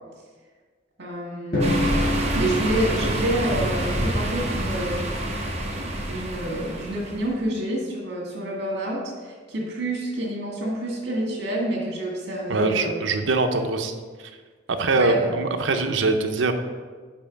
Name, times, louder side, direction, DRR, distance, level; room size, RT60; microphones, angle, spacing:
voice 1, 1.0-1.7 2.3-5.0 5.8-12.9 14.9-15.3, right 1 dB, 60° right, -2 dB, 1.8 m, -28 dB
Drum, 1.5-3.7, left 1 dB, 50° left, 1.7 m, -27 dB
sound 1, 1.6-7.3, right 1 dB, 35° right, 1.0 m, -27 dB
voice 2, 12.5-13.9 14.2-14.3 14.7-16.5, right 3 dB, 85° right, 6 dB, 0.6 m, -23 dB
5.5 x 5.2 x 5.1 m, 1.5 s
head